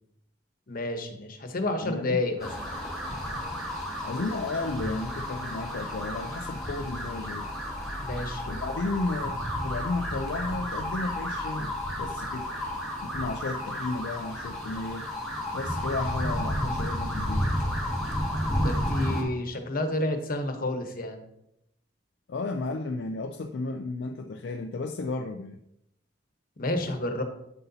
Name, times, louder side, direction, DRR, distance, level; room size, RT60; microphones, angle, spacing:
voice 1, 0.7-2.5 8.0-8.5 18.6-21.2 26.6-27.2, left 2 dB, 50° left, 1.1 m, -30 dB
voice 2, 1.8-2.2 4.0-7.5 8.5-12.5 13.0-15.1 15.5-17.5 22.3-25.6, left 3 dB, 70° left, 0.4 m, -33 dB
sound 1, 2.4-19.2, equal, ahead, 2.1 m, -32 dB
9.1 x 7.8 x 2.8 m
head